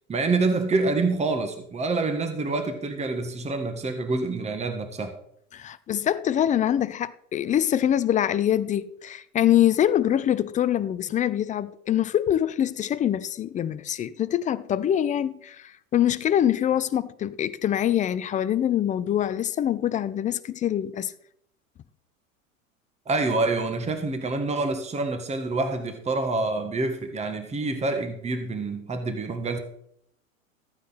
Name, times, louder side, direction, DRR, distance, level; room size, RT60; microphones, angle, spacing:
voice 1, 0.1-5.1 23.0-29.6, right 3 dB, 15° right, 1.6 m, -27 dB
voice 2, 5.5-21.1, left 10 dB, 20° left, 0.5 m, -24 dB
14.5 x 9.3 x 4.1 m
hypercardioid pair, 90°, 42 cm